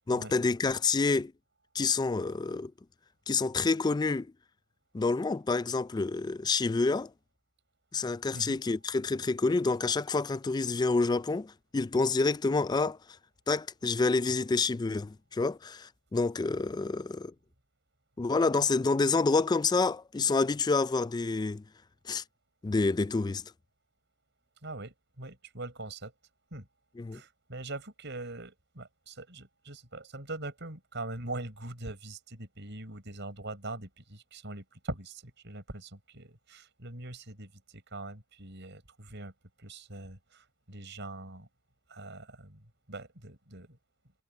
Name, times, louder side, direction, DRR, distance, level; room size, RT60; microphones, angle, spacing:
voice 1, 0.1-1.3 1.7-2.7 3.3-4.3 4.9-7.1 7.9-13.0 13.5-17.3 18.2-21.6 22.1-22.2 22.6-23.4 27.0-27.2, left 3 dB, 20° left, 0.3 m, -28 dB
voice 2, 24.6-26.1 26.5-26.7 27.1-39.3 39.6-41.5 41.9-43.8, right 2 dB, 55° right, 6.6 m, -42 dB
head